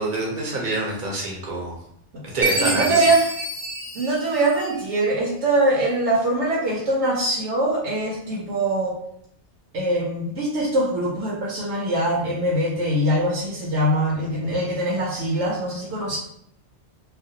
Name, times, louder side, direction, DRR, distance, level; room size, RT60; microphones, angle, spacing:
voice 1, 0.0-1.8 2.2-3.1, right 2 dB, 50° right, -2 dB, 0.7 m, -26 dB
Chime, 2.4-5.0, right 1 dB, 40° left, 0.8 m, -27 dB
voice 2, 2.6-3.3 3.9-9.0 9.7-16.2, right 1 dB, 75° right, -5 dB, 0.9 m, -23 dB
2.4 x 2.1 x 2.7 m, 0.71 s
omnidirectional pair, 1.2 m